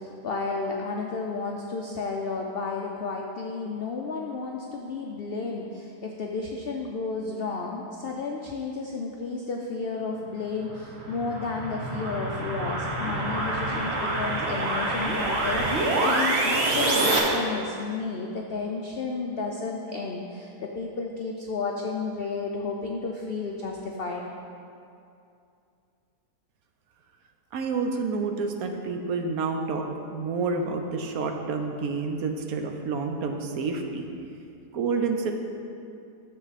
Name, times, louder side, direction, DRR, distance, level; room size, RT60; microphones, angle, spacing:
voice 1, 0.0-24.3, left 4 dB, 70° left, 0 dB, 0.5 m, -32 dB
sound 1, 10.7-17.2, right 2 dB, 45° right, 1.2 m, -26 dB
voice 2, 27.5-29.9 30.1-34.1 34.7-35.3, right 4 dB, 70° right, 4 dB, 1.1 m, -29 dB
9.0 x 6.7 x 4.1 m, 2.5 s
omnidirectional pair, 1.7 m